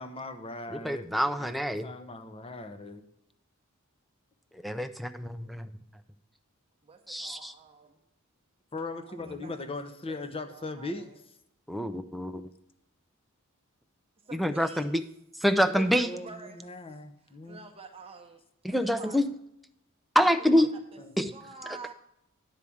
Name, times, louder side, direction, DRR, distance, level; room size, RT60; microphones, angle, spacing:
voice 1, 0.0-1.1 1.4-3.0 8.7-11.1 15.6-17.6 20.6-20.7 21.2-21.3, left 2 dB, 25° left, 8 dB, 0.8 m, -39 dB
voice 2, 0.7-1.9 4.5-5.7 7.1-7.5 11.7-12.5 14.3-15.0 15.4-16.1 18.6-19.3 20.1-20.7 21.2-21.3 21.7-21.8, equal, ahead, 8 dB, 0.5 m, -26 dB
voice 3, 6.8-8.0 9.1-9.7 10.1-11.1 14.3-14.8 15.7-16.6 17.2-18.4 18.7-19.2 20.2-20.3 20.9-21.0 21.3-21.9, right 4 dB, 30° right, 3 dB, 0.9 m, -47 dB
10.5 x 4.9 x 7.1 m, 0.78 s
head